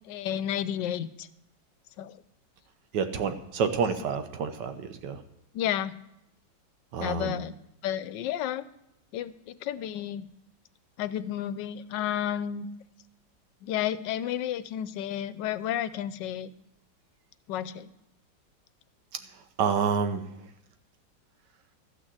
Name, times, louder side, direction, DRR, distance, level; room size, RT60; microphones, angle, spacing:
voice 1, 0.1-1.3 2.0-2.2 5.5-5.9 7.0-7.6 7.8-8.7 9.1-10.3 11.0-12.7 13.6-16.5 17.5-17.9, left 10 dB, 75° left, 14 dB, 1.2 m, -31 dB
voice 2, 2.9-5.2 6.9-7.4 19.6-20.3, right 6 dB, 75° right, 8 dB, 1.6 m, -28 dB
13.5 x 6.3 x 7.6 m, 0.82 s
omnidirectional pair, 2.0 m